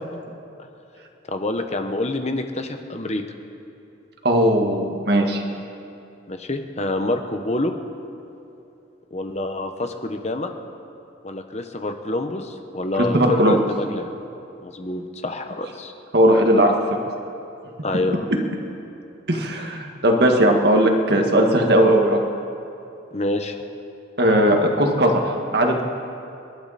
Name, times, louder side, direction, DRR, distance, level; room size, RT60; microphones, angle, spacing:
voice 1, 1.3-3.2 6.3-7.7 9.1-10.5 11.2-14.1 14.6-15.9 17.8-18.3 23.1-23.6, left 2 dB, 35° left, 6 dB, 1.1 m, -27 dB
voice 2, 4.2-5.4 12.9-13.6 16.1-16.7 19.3-22.2 24.2-25.8, right 1 dB, 55° right, 2 dB, 1.8 m, -18 dB
28.5 x 12.0 x 4.2 m, 2.8 s
head